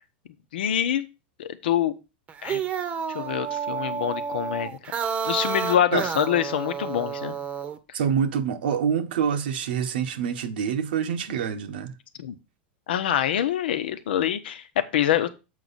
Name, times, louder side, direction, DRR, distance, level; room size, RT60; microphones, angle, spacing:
voice 1, 0.5-1.1 1.4-1.9 2.4-2.6 3.1-4.7 5.2-7.4 12.2-12.3 12.9-15.3, left 10 dB, 85° left, 1.0 m, -25 dB
sound 1, 2.3-7.8, right 6 dB, 25° right, 0.9 m, -30 dB
voice 2, 7.9-11.9, right 7 dB, 80° right, 1.1 m, -26 dB
7.5 x 4.8 x 4.1 m
supercardioid pair, 140°, 5 cm